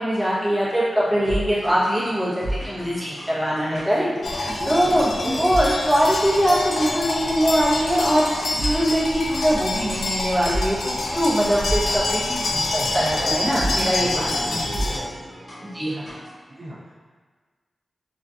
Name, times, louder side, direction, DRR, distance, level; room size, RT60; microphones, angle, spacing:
voice 1, 0.0-4.1 4.7-14.6 15.7-16.0, equal, 15° right, -10 dB, 1.2 m, -22 dB
sound 1, 0.9-16.3, right 1 dB, 30° left, 1.2 m, -35 dB
sound 2, 4.2-15.0, left 2 dB, 85° left, 0.3 m, -26 dB
voice 2, 4.4-5.4 13.2-15.3 16.5-16.9, right 1 dB, 50° right, -7 dB, 0.4 m, -36 dB
3.2 x 2.5 x 2.4 m, 1.5 s
wide cardioid pair, 80°, 0 cm